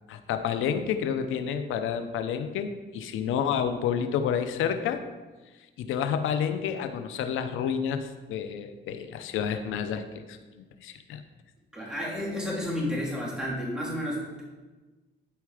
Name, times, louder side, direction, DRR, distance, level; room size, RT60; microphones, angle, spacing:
voice 1, 0.1-5.0 5.8-10.4 10.8-11.2, left 8 dB, 85° left, 8 dB, 0.8 m, -29 dB
voice 2, 11.7-14.4, left 1 dB, 5° right, -5 dB, 3.3 m, -31 dB
12.0 x 4.6 x 4.9 m, 1.3 s
cardioid pair, 90°, 20 cm